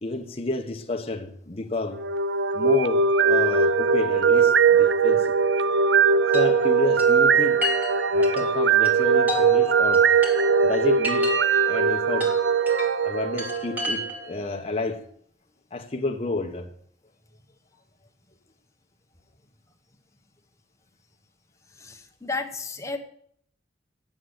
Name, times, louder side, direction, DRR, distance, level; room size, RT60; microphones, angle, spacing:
voice 1, 0.0-2.0 2.5-5.3 6.3-7.6 8.1-10.1 10.6-11.3 11.7-12.3 13.0-15.0 15.7-16.7, left 2 dB, 35° left, 0.9 m, -30 dB
sound 1, 1.9-14.1, right 5 dB, 70° right, 0.5 m, -20 dB
Chime, 6.3-14.4, left 1 dB, 10° right, 2.4 m, -34 dB
voice 2, 21.8-23.0, left 3 dB, 15° left, 1.1 m, -32 dB
8.7 x 7.6 x 8.0 m
head